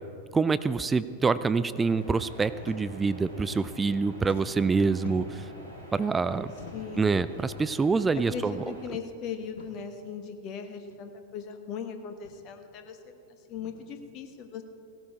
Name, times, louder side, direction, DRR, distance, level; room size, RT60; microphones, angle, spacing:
voice 1, 0.3-5.5 5.9-6.5 7.0-8.6, right 4 dB, 15° right, 15 dB, 0.4 m, -26 dB
sound 1, 1.7-8.9, equal, 85° right, 3.3 m, -46 dB
sound 2, 2.5-2.8 3.1-3.9 4.2-5.5 6.5-7.0 7.9-8.1 8.4-8.5 9.4-9.7 10.9-11.0 12.1-12.4 13.5-13.8, left 3 dB, 60° left, 1.8 m, -47 dB
voice 2, 6.7-7.2 8.3-13.2 13.5-14.6, left 6 dB, 40° left, 7 dB, 1.3 m, -39 dB
16.5 x 13.0 x 4.8 m, 2.6 s
figure-of-eight pair, 90°, 0 cm